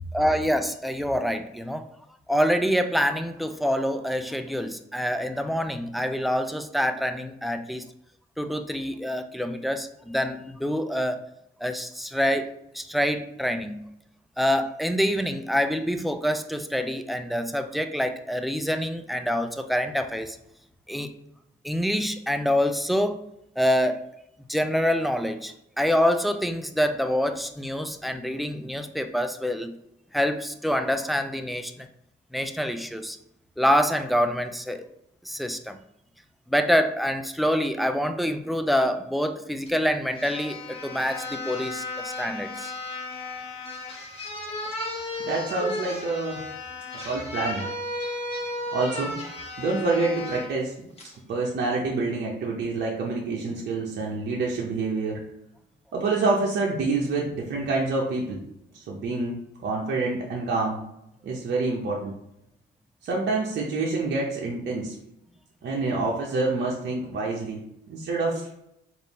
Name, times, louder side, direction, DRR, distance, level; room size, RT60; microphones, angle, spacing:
voice 1, 0.1-1.9 2.3-7.9 8.4-11.2 11.6-13.8 14.4-20.4 20.9-21.1 21.6-23.2 23.6-24.0 24.5-29.8 30.1-31.9 32.3-33.2 33.6-34.9 35.2-35.8 36.5-42.7, equal, ahead, 7 dB, 0.3 m, -26 dB
sound 1, 39.7-39.8 40.1-50.5 51.0-51.2, left 2 dB, 30° left, 1.1 m, -34 dB
voice 2, 45.3-46.4 46.9-47.6 48.7-49.2 49.6-50.7 51.3-55.2 55.9-58.4 58.7-60.8 61.2-62.1 63.0-64.9 65.6-67.6 67.9-68.5, right 3 dB, 60° right, -3 dB, 0.8 m, -27 dB
3.5 x 2.6 x 4.1 m, 0.80 s
cardioid pair, 90°, 20 cm